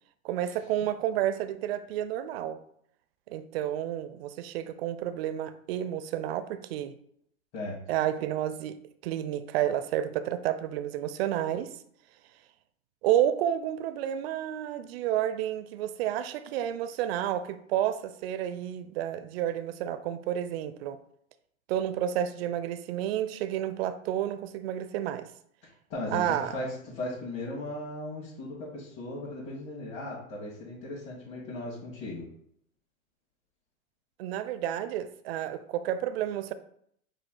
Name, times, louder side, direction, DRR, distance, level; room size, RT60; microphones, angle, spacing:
voice 1, 0.2-2.6 3.3-7.0 7.9-11.7 13.0-21.0 21.7-25.3 26.1-26.6 34.2-36.5, right 11 dB, 50° right, 0.4 m, -30 dB
voice 2, 25.6-32.3, left 1 dB, 40° left, 1.8 m, -37 dB
5.0 x 2.4 x 3.7 m
hypercardioid pair, 105°, 42 cm